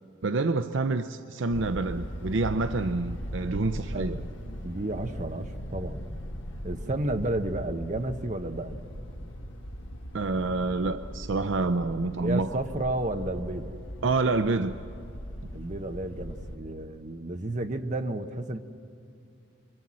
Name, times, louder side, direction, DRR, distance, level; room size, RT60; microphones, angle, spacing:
voice 1, 0.2-4.3 10.1-12.5 14.0-14.8, right 3 dB, 65° right, 9 dB, 0.6 m, -27 dB
sound 1, 1.5-16.6, equal, 70° left, 1.5 m, -39 dB
voice 2, 4.6-6.0 6.6-8.8 12.1-13.7 15.5-18.6, right 1 dB, 35° right, 6 dB, 1.0 m, -32 dB
26.5 x 24.5 x 7.5 m, 2.4 s
head